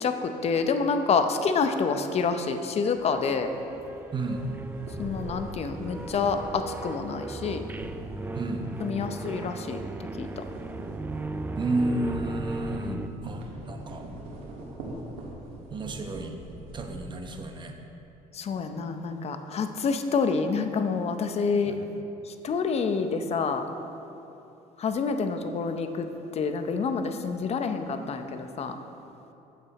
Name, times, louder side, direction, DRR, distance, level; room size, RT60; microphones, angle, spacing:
voice 1, 0.0-3.5 5.0-7.6 8.8-9.8 10.2-10.4 12.8-13.1 18.3-21.8 22.3-23.6 24.8-26.1 26.3-28.8, left 5 dB, 40° left, 7 dB, 0.7 m, -28 dB
sound 1, 3.0-13.1, right 3 dB, 10° right, 0.4 m, -37 dB
voice 2, 4.1-4.4 8.3-8.7 11.6-14.1 15.7-16.4 16.7-17.7 21.7-21.9, right 2 dB, 30° right, 4 dB, 0.9 m, -31 dB
sound 2, 4.2-9.7 10.0-17.4, right 1 dB, 85° right, 1.7 m, -43 dB
8.5 x 7.6 x 4.1 m, 2.9 s
cardioid pair, 100°, 16 cm